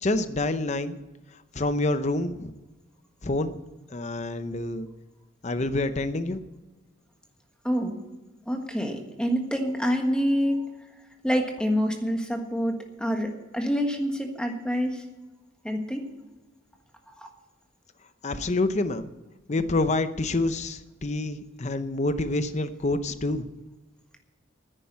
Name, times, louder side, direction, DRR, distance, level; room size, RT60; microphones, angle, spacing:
voice 1, 0.0-1.0 1.5-2.5 3.2-3.6 3.9-4.9 5.4-6.4 18.2-19.1 19.5-23.4, left 2 dB, 35° left, 11 dB, 0.6 m, -27 dB
voice 2, 7.6-8.0 8.5-10.7 11.2-15.0 15.6-16.0 17.2-17.3, equal, 5° left, 3 dB, 1.4 m, -27 dB
10.0 x 9.9 x 8.6 m, 1.2 s
head